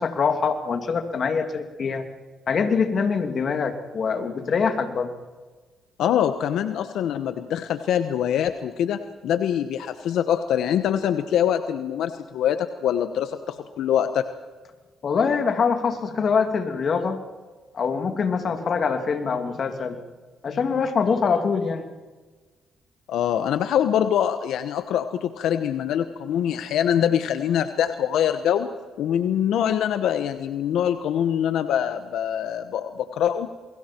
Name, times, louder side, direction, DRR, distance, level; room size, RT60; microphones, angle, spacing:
voice 1, 0.0-2.0 2.5-5.1 15.0-17.2 17.7-20.0 20.4-21.8, left 5 dB, 50° left, 6 dB, 2.8 m, -24 dB
voice 2, 6.0-14.3 23.1-28.7 29.0-33.5, left 9 dB, 80° left, 9 dB, 1.1 m, -24 dB
28.5 x 22.5 x 4.6 m, 1.3 s
cardioid pair, 90°, 0 cm